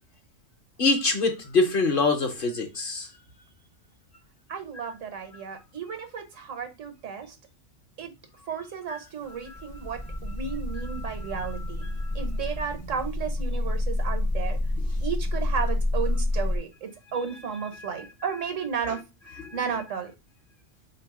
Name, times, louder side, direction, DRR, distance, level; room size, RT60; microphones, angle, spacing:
voice 1, 0.8-3.1 8.9-9.0 17.8-17.9 19.4-19.6, left 3 dB, 50° left, 0.9 m, -24 dB
voice 2, 4.5-7.3 8.0-8.1 8.5-11.8 12.1-14.6 15.0-19.0 19.5-20.1, right 6 dB, 80° right, 1.3 m, -33 dB
sound 1, 9.2-16.6, left 1 dB, 25° left, 0.5 m, -28 dB
3.5 x 2.9 x 4.6 m
omnidirectional pair, 1.3 m